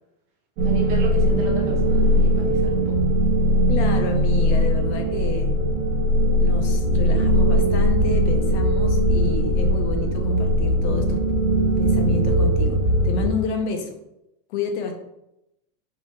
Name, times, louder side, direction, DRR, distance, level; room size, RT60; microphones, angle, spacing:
voice 1, 0.6-3.0, right 3 dB, 30° right, 1 dB, 0.5 m, -33 dB
sound 1, 0.6-13.3, equal, 50° right, 1.1 m, -20 dB
voice 2, 3.7-5.6 6.3-11.2 11.8-12.8 13.0-13.9 14.5-14.9, left 4 dB, 45° left, 5 dB, 0.6 m, -29 dB
4.9 x 2.8 x 3.1 m, 0.87 s
supercardioid pair, 160°, 50 cm